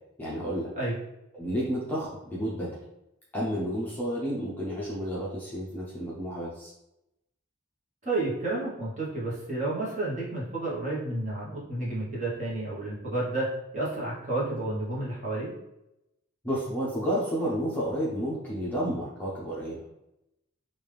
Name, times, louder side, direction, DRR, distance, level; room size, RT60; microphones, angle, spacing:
voice 1, 0.2-0.7 1.3-2.8 3.3-6.7 16.4-19.8, equal, 10° left, -7 dB, 0.6 m, -31 dB
voice 2, 8.0-13.5 13.7-15.5, right 2 dB, 35° right, -6 dB, 1.0 m, -31 dB
3.4 x 2.5 x 3.2 m, 0.88 s
head